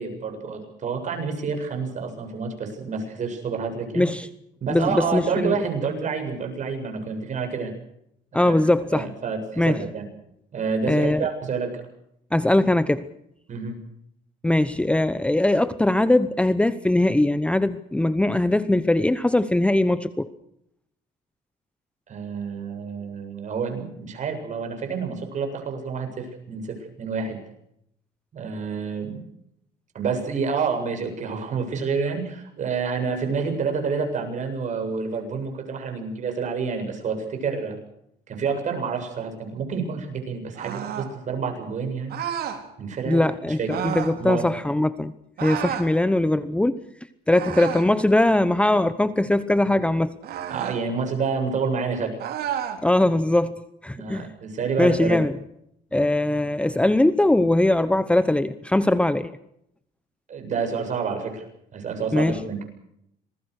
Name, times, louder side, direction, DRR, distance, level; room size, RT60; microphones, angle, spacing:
voice 1, 0.0-4.1 4.6-7.7 8.3-8.6 8.9-10.1 10.5-11.7 13.5-13.8 22.1-27.4 28.3-29.2 29.9-37.8 38.3-42.2 42.8-43.3 43.6-43.7 44.2-44.5 50.5-52.2 53.9-55.2 60.3-61.4 61.7-62.6, right 5 dB, 45° right, 4 dB, 7.5 m, -28 dB
voice 2, 4.0-4.3 4.7-5.5 8.3-9.1 9.6-9.9 10.9-11.3 12.3-13.0 14.4-20.3 43.1-43.6 43.8-45.1 45.4-46.8 47.3-50.2 52.8-54.3 54.8-55.4 55.9-59.3 62.1-62.4, left 1 dB, 5° left, 14 dB, 0.9 m, -21 dB
sound 1, 40.5-41.1 42.1-42.6 43.7-44.2 45.4-45.9 47.3-47.9 50.2-50.8 52.2-52.8, right 9 dB, 65° right, 3.8 m, -30 dB
27.0 x 20.5 x 6.6 m, 0.76 s
cardioid pair, 110°, 17 cm